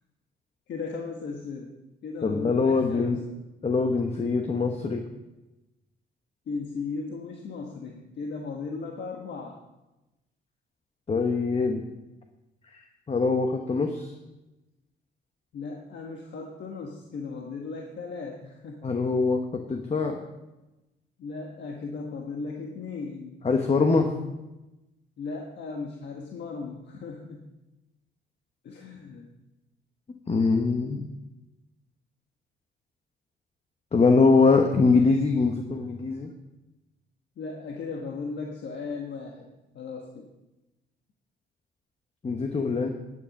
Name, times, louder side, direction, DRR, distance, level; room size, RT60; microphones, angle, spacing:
voice 1, 0.7-1.7 2.0-3.3 6.5-9.6 15.5-18.9 21.2-23.4 25.2-27.5 28.6-29.3 37.4-39.5 39.7-40.3, left 4 dB, 65° left, 1 dB, 1.3 m, -36 dB
voice 2, 2.2-3.2 3.6-5.0 11.1-11.8 12.7-14.1 18.8-19.4 19.7-20.2 23.4-24.1 30.3-31.1 33.9-36.3 42.2-42.9, left 4 dB, 30° left, 4 dB, 1.1 m, -23 dB
11.0 x 8.8 x 5.3 m, 1.0 s
cardioid pair, 90°, 20 cm